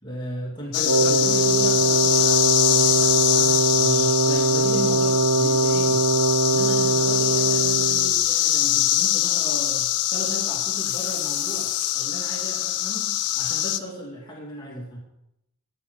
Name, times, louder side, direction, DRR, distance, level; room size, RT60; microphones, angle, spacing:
voice 1, 0.0-6.0 6.5-15.0, right 1 dB, 20° left, -3 dB, 2.5 m, -36 dB
sound 1, 0.7-13.8, left 13 dB, 80° left, 0.6 m, -23 dB
Wind instrument woodwind instrument, 0.8-8.1, right 3 dB, 65° right, 0.6 m, -21 dB
9.7 x 9.5 x 5.4 m, 0.84 s
head